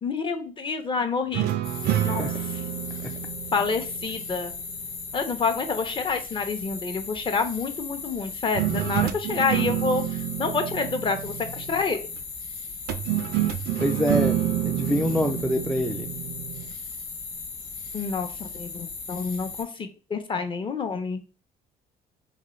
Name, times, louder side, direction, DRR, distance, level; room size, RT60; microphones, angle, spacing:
voice 1, 0.0-1.5 2.0-2.2 3.5-4.5 5.1-10.0 10.4-12.1 17.9-21.2, left 4 dB, 30° left, 7 dB, 0.7 m, -28 dB
sound 1, 1.3-4.7 8.6-12.0 12.9-16.7, right 12 dB, 70° right, 0.4 m, -28 dB
sound 2, 1.6-19.6, left 4 dB, 70° left, 1.1 m, -37 dB
voice 2, 13.8-16.1, left 1 dB, 5° left, 3 dB, 0.3 m, -26 dB
3.8 x 2.2 x 3.1 m, 0.34 s
cardioid pair, 110°, 17 cm